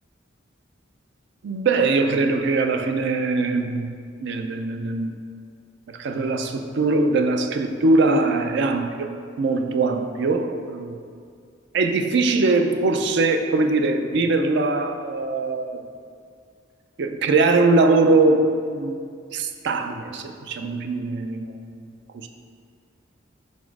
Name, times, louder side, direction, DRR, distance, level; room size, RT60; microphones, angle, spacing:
voice 1, 1.4-3.9 4.2-5.2 5.9-9.1 9.4-11.0 11.7-15.8 17.0-21.9 22.1-22.3, right 3 dB, 65° right, 6 dB, 0.4 m, -22 dB
5.1 x 4.1 x 4.6 m, 2.2 s
head